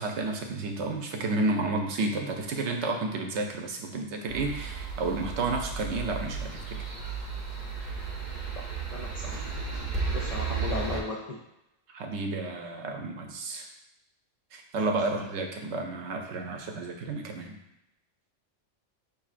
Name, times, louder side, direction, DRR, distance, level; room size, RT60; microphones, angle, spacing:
voice 1, 0.0-6.9 11.9-13.7 14.5-17.6, right 3 dB, 70° right, 2 dB, 0.9 m, -31 dB
sound 1, 4.3-11.0, right 4 dB, 45° right, 0.7 m, -34 dB
voice 2, 8.9-9.4 10.1-11.4, left 1 dB, 80° left, -2 dB, 0.3 m, -35 dB
5.2 x 2.7 x 2.4 m, 0.89 s
omnidirectional pair, 1.3 m